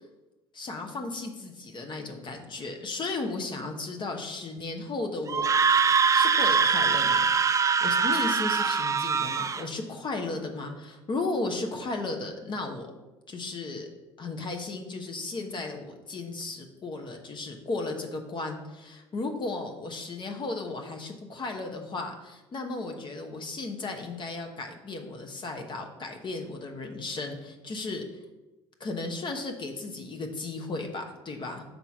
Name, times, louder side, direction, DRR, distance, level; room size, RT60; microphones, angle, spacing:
voice 1, 0.5-5.8 6.1-7.3 7.8-12.9 13.3-13.9 14.2-28.0 28.8-31.6, left 3 dB, 40° left, 4 dB, 1.1 m, -35 dB
Screaming, 5.3-9.6, right 6 dB, 25° right, 0.4 m, -23 dB
5.6 x 3.8 x 6.0 m, 1.1 s
hypercardioid pair, 65°, 13 cm